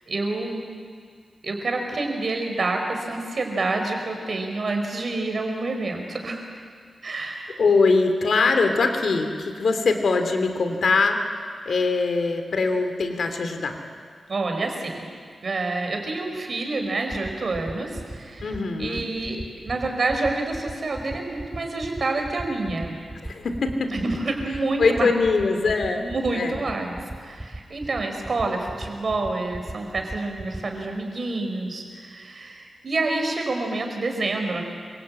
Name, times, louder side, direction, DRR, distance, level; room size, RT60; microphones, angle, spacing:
voice 1, 0.1-0.8 1.4-6.5 7.0-7.6 14.3-15.0 15.4-18.5 18.8-19.4 19.6-23.0 23.9-25.1 25.9-34.6, right 2 dB, 45° right, 3 dB, 4.6 m, -28 dB
voice 2, 7.6-11.2 11.6-13.8 18.4-19.1 23.2-23.9 24.8-26.6, left 4 dB, 60° left, 6 dB, 3.0 m, -22 dB
sound 1, 17.1-30.6, right 1 dB, 10° right, 2.2 m, -35 dB
27.5 x 24.5 x 8.6 m, 2.1 s
wide cardioid pair, 170°, 0 cm